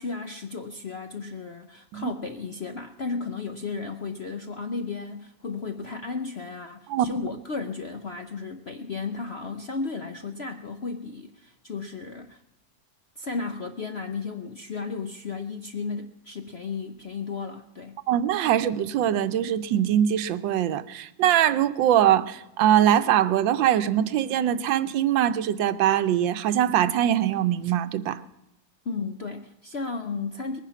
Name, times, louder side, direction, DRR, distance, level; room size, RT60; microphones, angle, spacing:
voice 1, 0.0-12.4 13.2-18.0 28.8-30.6, left 4 dB, 60° left, 0.6 m, -34 dB
voice 2, 18.1-28.2, right 11 dB, 85° right, 1.4 m, -22 dB
20.5 x 10.0 x 5.8 m
omnidirectional pair, 2.0 m